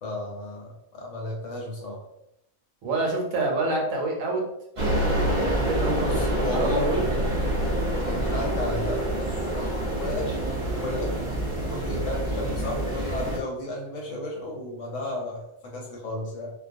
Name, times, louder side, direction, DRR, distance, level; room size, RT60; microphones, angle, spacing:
voice 1, 0.0-2.0 6.0-7.1 8.0-9.0 9.4-16.5, left 1 dB, 65° left, -2 dB, 0.9 m, -33 dB
voice 2, 2.8-4.4 5.2-7.1, right 2 dB, 75° right, 0 dB, 1.0 m, -27 dB
sound 1, 4.8-13.4, right 1 dB, 30° right, 0.6 m, -27 dB
2.3 x 2.2 x 2.5 m, 0.81 s
omnidirectional pair, 1.5 m